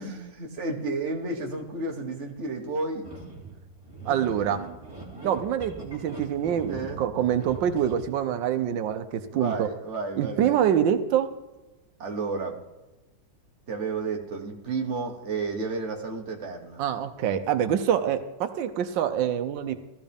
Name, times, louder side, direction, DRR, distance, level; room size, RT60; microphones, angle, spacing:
voice 1, 0.0-3.1 4.0-4.1 4.5-4.6 6.7-7.0 9.3-10.6 12.0-12.6 13.7-16.8, right 3 dB, 40° right, 1 dB, 1.7 m, -32 dB
sound 1, 3.0-8.2, right 2 dB, 10° right, 2.7 m, -42 dB
voice 2, 4.1-4.6 5.2-9.7 10.2-11.3 16.8-19.8, right 9 dB, 85° right, 9 dB, 1.4 m, -25 dB
16.0 x 14.0 x 3.5 m, 1.1 s
omnidirectional pair, 1.9 m